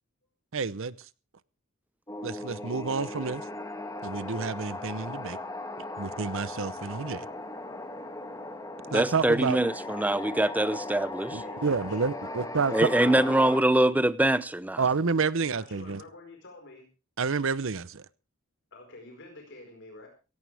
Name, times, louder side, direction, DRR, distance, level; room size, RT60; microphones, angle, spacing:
voice 1, 0.5-0.9 2.2-3.4 4.0-5.4 6.0-7.3 8.9-9.6 11.3-12.7 14.8-16.0 17.2-18.0, right 4 dB, 70° right, 0.8 m, -29 dB
sound 1, 2.1-13.6, left 2 dB, 15° left, 2.2 m, -38 dB
voice 2, 8.9-11.4 12.7-14.8, right 1 dB, 10° right, 0.7 m, -24 dB
voice 3, 11.4-13.1 15.5-16.9 18.7-20.1, left 2 dB, 60° left, 4.7 m, -48 dB
17.0 x 16.0 x 3.4 m
head